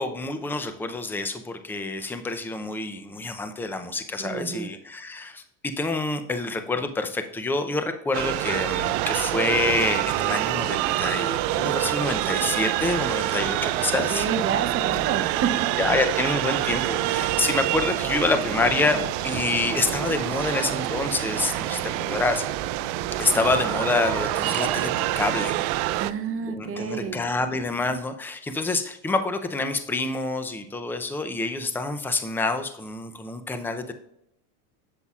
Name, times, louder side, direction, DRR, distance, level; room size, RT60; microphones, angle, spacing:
voice 1, 0.0-14.3 15.8-22.4 23.2-25.6 26.5-33.9, left 3 dB, 5° left, 8 dB, 0.5 m, -27 dB
voice 2, 4.2-4.7 14.1-15.7 26.0-27.2, right 6 dB, 30° right, 7 dB, 0.8 m, -29 dB
sound 1, 8.1-26.1, right 16 dB, 60° right, 0.5 m, -26 dB
sound 2, 9.5-28.0, left 5 dB, 55° left, 1.5 m, -45 dB
7.9 x 7.4 x 2.4 m, 0.75 s
supercardioid pair, 115°, 46 cm